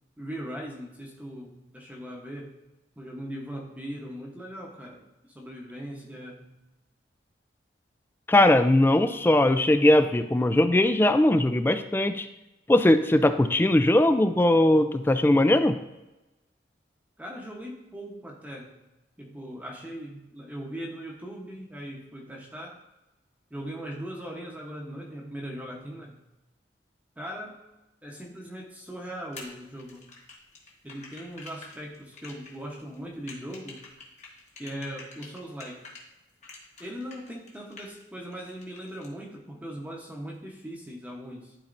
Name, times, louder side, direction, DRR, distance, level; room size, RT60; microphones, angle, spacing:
voice 1, 0.2-2.6 3.0-6.5 17.2-18.8 19.2-22.8 23.5-26.2 27.2-27.6 28.0-30.2 30.8-33.9 34.6-35.8 36.8-41.6, equal, 10° right, -1 dB, 0.9 m, -39 dB
voice 2, 8.3-12.3 12.7-15.8, left 1 dB, 10° left, 10 dB, 0.3 m, -20 dB
sound 1, 29.3-36.0 36.4-38.0 38.3-39.1, left 3 dB, 40° left, 1.3 m, -47 dB
12.0 x 4.3 x 2.6 m, 1.0 s
head